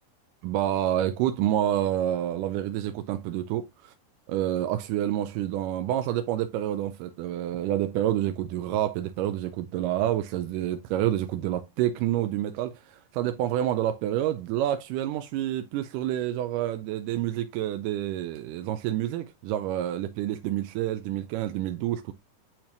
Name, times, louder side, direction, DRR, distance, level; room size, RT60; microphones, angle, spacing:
voice 1, 0.4-3.9 4.3-22.1, right 12 dB, 80° right, 1.9 m, -28 dB
8.7 x 4.4 x 2.5 m
omnidirectional pair, 4.1 m